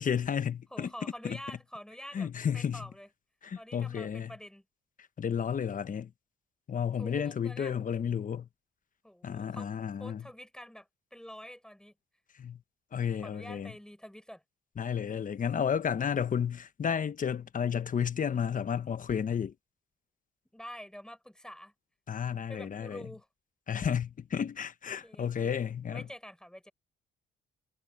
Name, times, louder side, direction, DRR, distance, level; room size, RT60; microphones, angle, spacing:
voice 1, 0.0-0.9 1.2-1.4 2.1-2.9 3.4-4.3 5.2-6.1 6.7-8.5 9.2-10.3 12.4-12.6 12.9-13.7 14.8-19.5 22.1-23.1 23.7-26.1, left 7 dB, 40° left, 1.1 m, -32 dB
voice 2, 0.7-3.1 3.6-4.6 7.0-7.7 9.0-9.7 10.0-11.9 13.2-14.4 20.5-21.7 22.5-23.3 25.0-25.6 25.9-26.7, equal, 5° left, 5.0 m, -47 dB
cardioid pair, 90°, 20 cm